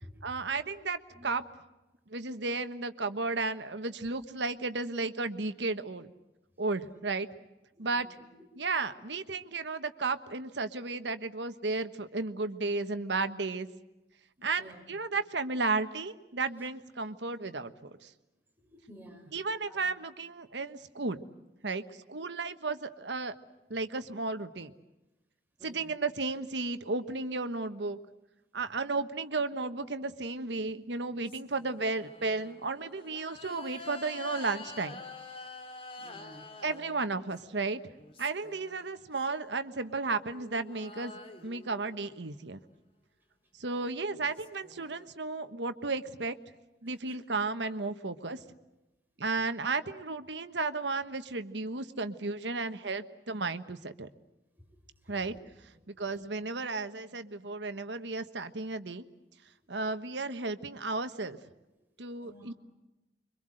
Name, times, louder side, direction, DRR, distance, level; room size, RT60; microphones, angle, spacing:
voice 1, 0.2-1.4 2.1-6.1 6.6-7.3 7.8-8.1 8.6-13.7 14.4-18.1 19.3-21.2 21.6-23.3 23.7-24.7 25.6-28.0 28.5-35.0 36.6-37.8 38.2-41.1 41.4-42.6 43.5-46.4 46.8-48.4 49.2-54.1 55.1-55.4 55.9-59.0 59.7-61.4 62.0-62.5, right 3 dB, 75° right, 9 dB, 1.3 m, -34 dB
voice 2, 7.7-8.3 14.4-15.0 16.6-16.7 18.6-19.9 22.3-22.4 25.6-25.9 28.5-28.6 32.4-32.5 36.0-36.5 46.8-47.2 54.6-54.8 55.0-55.4 55.7-56.3 62.2-62.5, equal, 10° right, 3 dB, 4.0 m, -54 dB
sound 1, 30.6-37.5 37.9-39.3 39.9-42.5 43.8-43.9 44.1-45.1, left 3 dB, 30° left, 2.3 m, -48 dB
26.0 x 24.0 x 7.8 m, 1.0 s
head